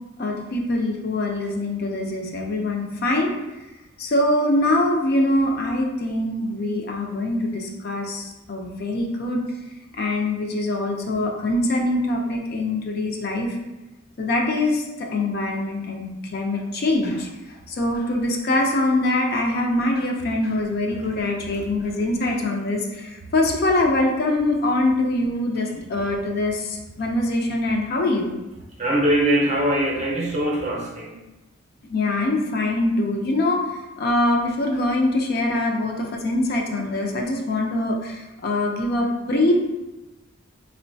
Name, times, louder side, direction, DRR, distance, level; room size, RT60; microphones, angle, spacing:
voice 1, 0.2-3.3 4.0-9.4 10.0-13.5 14.2-17.3 17.7-28.3 31.9-33.6 34.0-39.5, left 2 dB, 50° left, 1 dB, 0.4 m, -23 dB
voice 2, 28.8-31.1, right 1 dB, 35° right, -2 dB, 0.6 m, -22 dB
3.7 x 2.1 x 2.6 m, 1.0 s
head